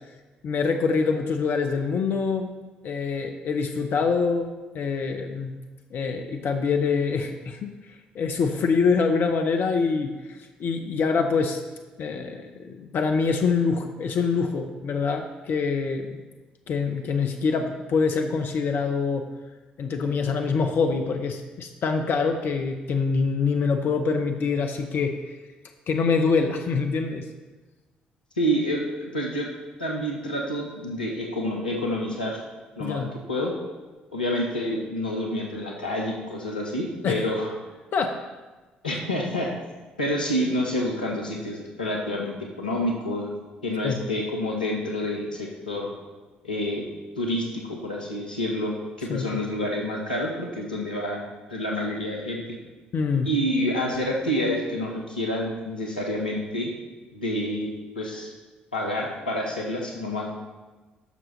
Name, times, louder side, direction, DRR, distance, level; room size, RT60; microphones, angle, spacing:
voice 1, 0.4-2.5 2.8-5.5 5.9-11.6 12.0-16.2 16.7-19.3 19.8-25.3 25.9-27.3 32.8-33.1 37.0-37.2 37.9-38.2 43.8-44.0 49.1-49.3 52.9-53.3, left 5 dB, 50° left, 5 dB, 0.6 m, -25 dB
voice 2, 28.4-29.5 29.8-32.4 32.8-33.5 34.1-37.5 38.8-39.5 40.0-43.3 43.6-45.9 46.4-46.8 47.2-51.2 51.5-52.4 53.2-56.7 57.1-57.7 58.0-58.3 58.7-60.3, left 1 dB, 85° left, -1 dB, 1.0 m, -28 dB
12.0 x 6.1 x 3.2 m, 1.3 s
figure-of-eight pair, 45°, 5 cm